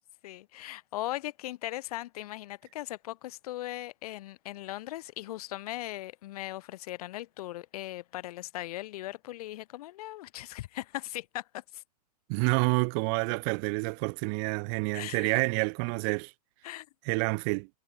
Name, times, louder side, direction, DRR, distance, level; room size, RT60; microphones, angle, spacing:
voice 1, 0.2-11.8 14.9-15.4 16.6-16.9, left 16 dB, 60° left, 1.7 m, -39 dB
voice 2, 12.3-16.3 17.1-17.7, right 40 dB or more, 40° right, 0.4 m, -28 dB
hypercardioid pair, 130°, 21 cm